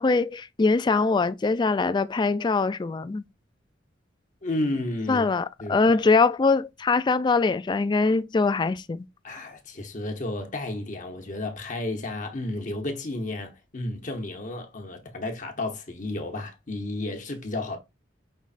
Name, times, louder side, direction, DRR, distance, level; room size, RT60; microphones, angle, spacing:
voice 1, 0.0-3.2 5.1-9.1, left 4 dB, 25° left, 0.3 m, -23 dB
voice 2, 4.4-5.3 5.6-6.0 9.2-17.8, left 2 dB, 45° left, 0.9 m, -32 dB
5.4 x 3.1 x 2.4 m
head